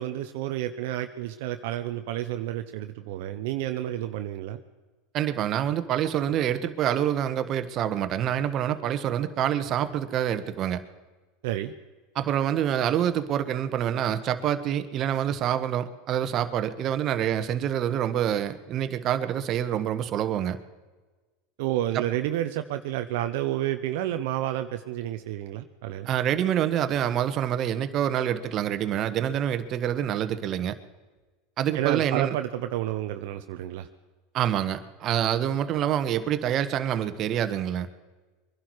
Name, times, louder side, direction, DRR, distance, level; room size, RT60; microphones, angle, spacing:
voice 1, 0.0-4.6 11.4-11.7 21.6-26.1 31.7-33.9, right 13 dB, 70° right, 7 dB, 0.8 m, -30 dB
voice 2, 5.1-10.8 12.1-20.6 21.9-22.0 26.1-30.8 31.6-32.3 34.3-37.9, right 10 dB, 45° right, 10 dB, 1.3 m, -26 dB
23.0 x 11.5 x 4.8 m, 1.3 s
hypercardioid pair, 105°, 0 cm